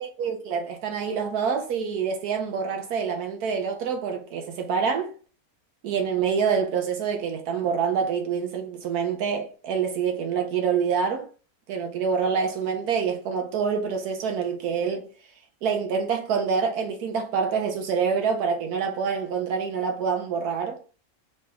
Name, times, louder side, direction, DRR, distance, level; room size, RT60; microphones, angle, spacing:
voice 1, 0.0-5.1 5.8-11.3 11.7-15.1 15.6-20.8, right 6 dB, 75° right, 1.2 m, -26 dB
3.9 x 3.2 x 3.4 m
omnidirectional pair, 1.6 m